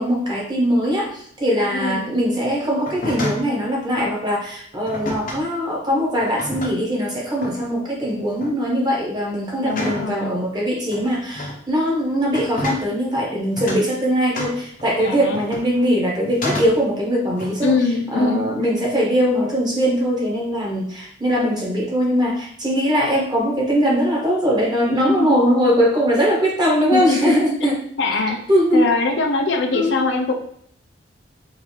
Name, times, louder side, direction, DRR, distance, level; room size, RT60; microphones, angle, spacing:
voice 1, 0.0-17.7 18.1-27.8 28.5-28.8 29.7-30.0, equal, 20° right, -3 dB, 1.2 m, -21 dB
voice 2, 1.7-2.1 9.6-10.4 15.0-15.4 17.6-18.9 24.9-25.4 26.9-27.4 28.0-28.4 28.7-30.3, left 3 dB, 75° left, 3 dB, 0.7 m, -22 dB
sound 1, 2.9-3.5 4.9-5.5 6.2-7.0 7.4-7.7 8.2-8.6 9.7-10.1 10.9-11.6 12.3-12.9 13.5-13.9 14.4-15.8 16.2-16.9 17.4-17.8, left 1 dB, 45° left, 0.9 m, -30 dB
5.1 x 2.7 x 3.3 m, 0.62 s
head